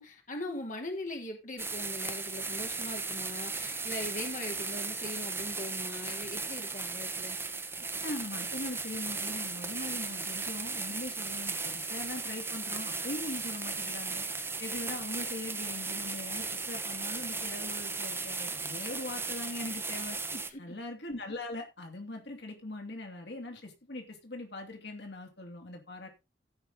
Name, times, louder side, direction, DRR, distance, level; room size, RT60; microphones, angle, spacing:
voice 1, 0.0-7.4 20.3-20.7, left 1 dB, 50° left, 3.0 m, -41 dB
sound 1, 1.6-20.5, right 4 dB, 15° right, 1.3 m, -36 dB
voice 2, 8.0-14.2 14.6-20.2 20.6-26.1, left 2 dB, 70° left, 2.9 m, -41 dB
16.0 x 5.9 x 3.8 m
head